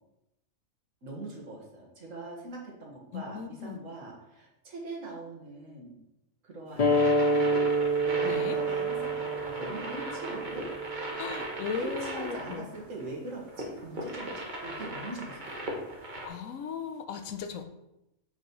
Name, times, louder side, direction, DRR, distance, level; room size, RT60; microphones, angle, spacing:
voice 1, 1.0-6.0 6.4-10.6 11.8-15.8, right 2 dB, 70° right, -2 dB, 1.9 m, -42 dB
voice 2, 3.1-3.8 8.2-8.6 11.1-12.7 16.2-17.7, left 6 dB, 80° left, 7 dB, 1.1 m, -37 dB
sound 1, 6.7-16.3, right 1 dB, 35° right, 1.3 m, -38 dB
sound 2, 6.8-11.9, right 1 dB, 40° left, 0.6 m, -28 dB
7.3 x 5.9 x 3.1 m, 0.90 s
omnidirectional pair, 1.4 m